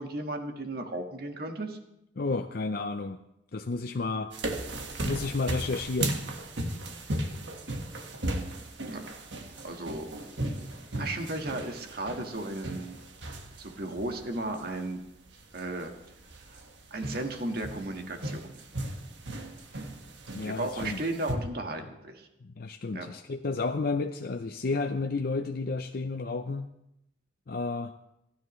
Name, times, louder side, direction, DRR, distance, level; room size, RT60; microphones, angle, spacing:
voice 1, 0.0-1.8 8.9-9.0 9.6-10.1 10.9-13.0 13.6-15.0 15.5-15.9 16.5-16.6 16.9-18.5 20.4-22.3 22.9-23.1, right 2 dB, 60° right, 4 dB, 1.6 m, -35 dB
voice 2, 2.2-3.2 3.5-4.3 5.0-6.2 20.3-21.0 22.4-26.7 27.5-27.9, left 3 dB, 55° left, 6 dB, 0.6 m, -31 dB
sound 1, 4.3-21.3, right 1 dB, 80° right, 1.5 m, -37 dB
28.0 x 10.0 x 3.2 m, 0.84 s
head